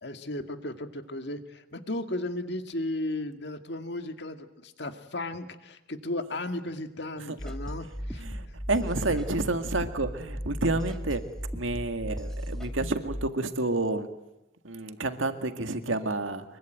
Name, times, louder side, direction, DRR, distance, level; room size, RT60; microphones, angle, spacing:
voice 1, 0.0-8.2 9.1-9.2, left 1 dB, 60° left, 8 dB, 2.0 m, -35 dB
sound 1, 7.4-13.3, equal, 5° left, 1.7 m, -36 dB
voice 2, 8.2-11.2 11.5-14.1 14.6-16.4, right 2 dB, 85° right, 8 dB, 2.0 m, -29 dB
24.5 x 23.0 x 9.2 m, 0.93 s
head